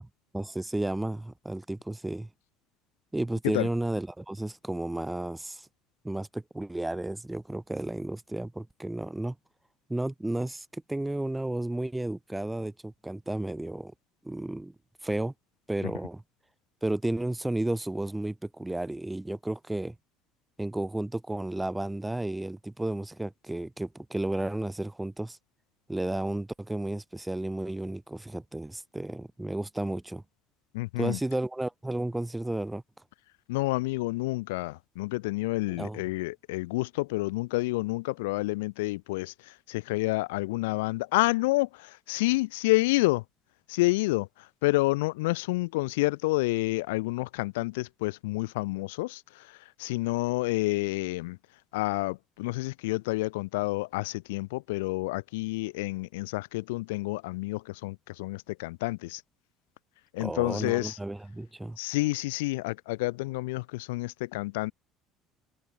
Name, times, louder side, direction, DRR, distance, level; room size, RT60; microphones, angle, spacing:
voice 1, 0.3-2.3 3.1-5.7 6.0-9.3 9.9-13.9 14.2-14.7 15.0-15.3 15.7-16.2 16.8-19.9 20.6-25.4 25.9-30.2 31.0-32.8 35.7-36.0 60.2-61.8, right 1 dB, 10° right, 4.7 m, -32 dB
voice 2, 30.7-31.2 33.5-43.2 43.7-51.4 51.7-59.2 60.1-61.0 61.8-64.7, left 22 dB, 80° left, 4.7 m, -29 dB
hypercardioid pair, 70°, 0 cm